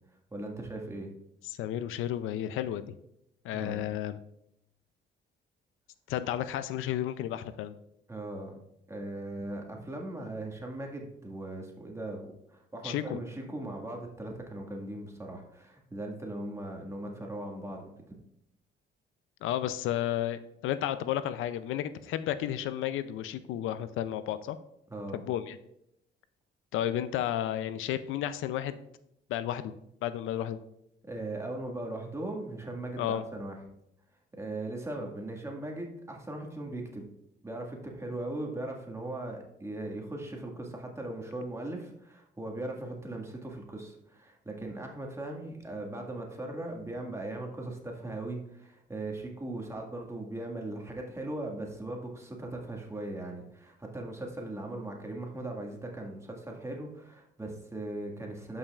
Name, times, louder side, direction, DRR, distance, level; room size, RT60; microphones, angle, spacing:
voice 1, 0.3-1.1 3.5-3.9 8.1-8.5 8.9-17.9 24.9-25.2 31.0-33.5 34.3-37.0 37.4-58.6, right 2 dB, 15° right, 0 dB, 1.8 m, -39 dB
voice 2, 1.4-3.0 3.4-4.2 6.1-7.8 12.8-13.2 19.4-24.6 25.1-25.6 26.7-28.8 29.3-29.7 30.0-30.6 33.0-33.2, left 11 dB, 85° left, 13 dB, 0.5 m, -32 dB
12.0 x 5.5 x 2.4 m, 0.80 s
cardioid pair, 90°, 20 cm